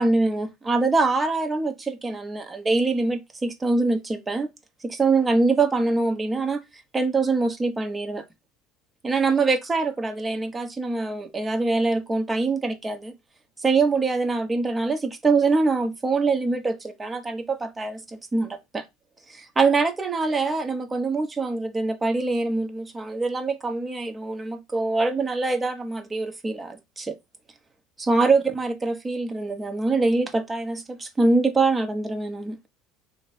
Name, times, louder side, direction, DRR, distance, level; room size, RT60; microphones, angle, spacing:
voice 1, 0.0-4.5 4.8-6.6 6.9-8.2 9.0-13.1 13.6-18.8 19.3-27.2 28.0-32.6, right 3 dB, 20° right, 0.8 m, -24 dB
2.8 x 2.6 x 4.0 m
hypercardioid pair, 80°, 0 cm